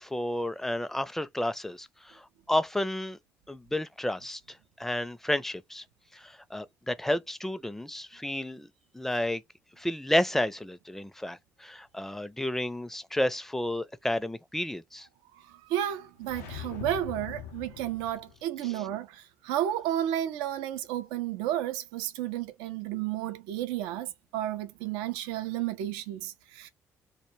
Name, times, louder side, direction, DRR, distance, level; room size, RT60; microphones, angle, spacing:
voice 1, 0.0-3.2 3.5-5.8 6.1-8.7 8.9-9.4 9.8-15.1 18.6-18.9, left 1 dB, 5° left, 0.4 m, -31 dB
voice 2, 15.5-26.7, right 12 dB, 80° right, 0.4 m, -32 dB
sound 1, 16.2-18.4, left 8 dB, 90° left, 0.4 m, -42 dB
2.2 x 2.1 x 3.0 m
hypercardioid pair, 45°, 8 cm